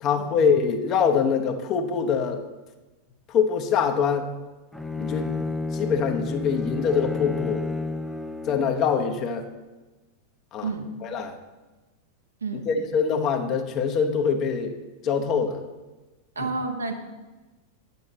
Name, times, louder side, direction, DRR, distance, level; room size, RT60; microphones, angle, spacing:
voice 1, 0.0-2.4 3.3-4.3 5.0-5.5 5.7-7.7 8.4-9.5 10.5-10.7 11.0-11.4 12.7-14.8 15.0-15.6 16.4-16.5, left 6 dB, 35° left, 5 dB, 1.0 m, -24 dB
Bowed string instrument, 4.7-8.9, left 3 dB, ahead, 0.6 m, -30 dB
voice 2, 16.3-16.9, right 3 dB, 75° right, 4 dB, 1.1 m, -30 dB
9.6 x 8.4 x 4.1 m, 1.2 s
figure-of-eight pair, 90°, 0 cm